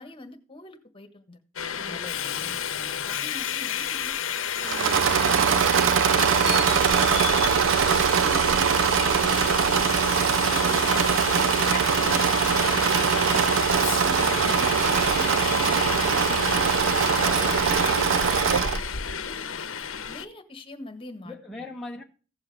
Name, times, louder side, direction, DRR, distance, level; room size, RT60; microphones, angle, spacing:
voice 1, 0.0-1.4 1.7-2.0 2.4-2.6 3.0-4.2 4.6-7.6 8.0-9.7 10.3-11.0 11.5-15.9 16.2-18.8 19.2-19.4 20.0-21.3, left 2 dB, 25° left, 1.5 m, -44 dB
Subway metro underground, 1.6-20.3, left 7 dB, 90° left, 0.9 m, -30 dB
voice 2, 1.9-3.3 21.2-22.0, left 2 dB, ahead, 1.0 m, -41 dB
Engine / Mechanisms, 4.6-18.9, right 7 dB, 70° right, 0.4 m, -22 dB
16.0 x 7.1 x 3.4 m
head